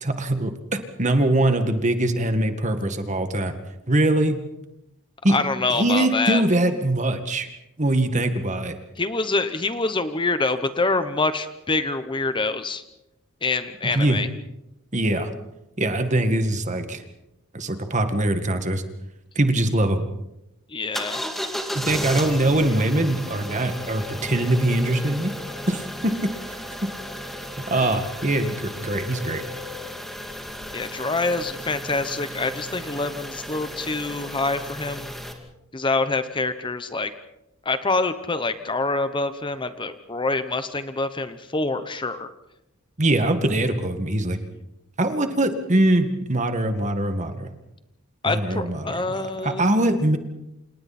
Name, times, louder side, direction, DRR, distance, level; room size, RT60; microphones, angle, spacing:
voice 1, 0.0-3.5 3.9-4.4 5.2-5.4 5.7-7.5 7.8-8.7 13.9-14.2 14.9-15.3 15.8-17.0 17.5-18.8 19.4-20.0 21.7-25.3 25.7-26.3 27.7-29.4 43.0-44.4 45.0-47.5 48.2-50.2, right 1 dB, 35° right, 7 dB, 1.9 m, -22 dB
voice 2, 5.3-6.4 9.0-12.8 13.4-14.3 20.7-21.2 27.8-28.0 30.7-35.1 35.7-37.1 37.6-42.3 48.2-49.6, left 3 dB, 25° left, 11 dB, 0.9 m, -26 dB
sound 1, 20.9-35.3, equal, ahead, 2.5 m, -34 dB
29.0 x 27.5 x 4.3 m, 0.89 s
head